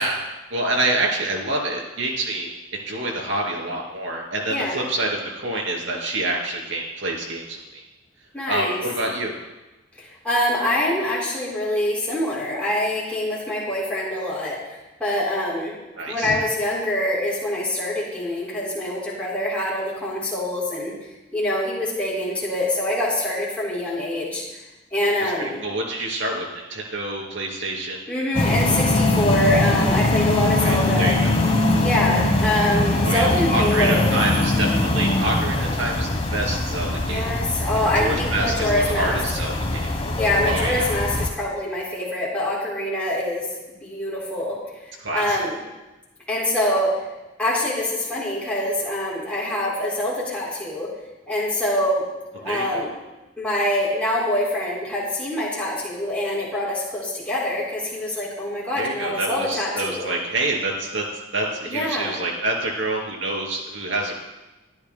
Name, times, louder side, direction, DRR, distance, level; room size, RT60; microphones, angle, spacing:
voice 1, 0.0-7.8 8.5-9.3 16.0-16.4 25.2-28.0 30.5-31.4 33.0-37.3 37.9-39.9 40.4-40.9 45.0-45.4 52.4-52.9 58.7-61.0 61.3-64.1, right 2 dB, 80° right, 0 dB, 2.8 m, -27 dB
voice 2, 4.5-4.8 8.3-8.8 10.0-15.8 16.1-20.9 21.3-24.6 24.9-25.6 28.1-31.2 31.8-34.1 37.1-39.2 40.1-43.5 43.8-45.6 46.3-46.9 47.4-50.9 51.3-52.0 52.4-52.9 53.4-60.1 61.6-62.2, left 1 dB, 5° left, -7 dB, 3.9 m, -25 dB
sound 1, 28.3-41.3, left 2 dB, 30° left, 1.1 m, -22 dB
23.5 x 11.0 x 2.2 m, 1.1 s
head